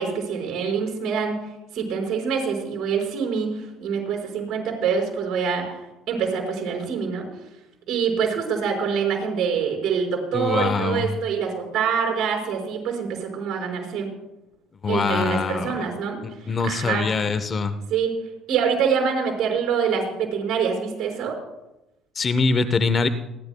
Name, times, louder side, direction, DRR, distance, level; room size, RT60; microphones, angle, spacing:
voice 1, 0.0-1.3 1.7-5.8 6.1-7.3 7.9-14.1 14.9-17.1 17.9-18.1 18.5-21.3, right 6 dB, 60° right, 1 dB, 5.3 m, -25 dB
voice 2, 10.3-11.1 14.8-15.8 16.5-17.7 22.2-23.1, left 4 dB, 40° left, 11 dB, 0.9 m, -23 dB
29.0 x 11.5 x 2.3 m, 0.95 s
supercardioid pair, 85°, 0 cm